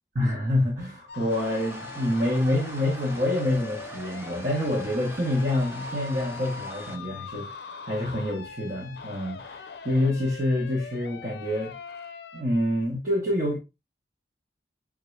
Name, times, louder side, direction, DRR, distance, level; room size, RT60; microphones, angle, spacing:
voice 1, 0.1-7.6 7.8-11.7 12.3-13.6, left 1 dB, 45° right, 1.1 m, -27 dB
sound 1, 1.1-12.4, left 5 dB, 60° left, 0.5 m, -42 dB
sound 2, 1.3-7.0, right 1 dB, 15° right, 0.5 m, -43 dB
3.7 x 3.6 x 3.2 m
head